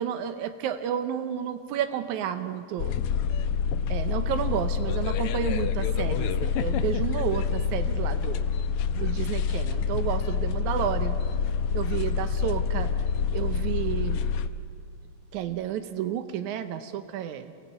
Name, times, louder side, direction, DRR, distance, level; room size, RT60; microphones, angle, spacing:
voice 1, 0.0-3.0 3.9-8.5 8.9-11.2 11.7-12.9 13.3-14.3 15.3-17.5, right 10 dB, 90° right, 9 dB, 2.3 m, -31 dB
sound 1, 2.8-14.5, left 6 dB, 75° left, 1.4 m, -27 dB
24.0 x 16.5 x 8.1 m, 2.3 s
omnidirectional pair, 3.3 m